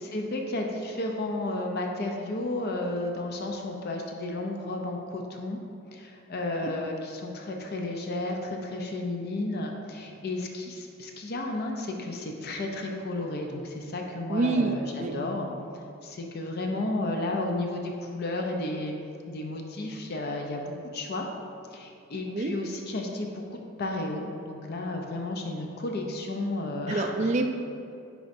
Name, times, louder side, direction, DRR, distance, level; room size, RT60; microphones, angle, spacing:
voice 1, 0.0-5.6 5.9-14.8 15.1-15.5 16.0-18.9 19.3-21.3 21.7-27.3, left 2 dB, 50° left, 2 dB, 0.6 m, -32 dB
voice 2, 14.3-14.7 15.0-15.2 22.3-22.5 26.9-27.5, right 3 dB, 35° right, 3 dB, 0.3 m, -26 dB
9.2 x 4.7 x 2.6 m, 2.5 s
head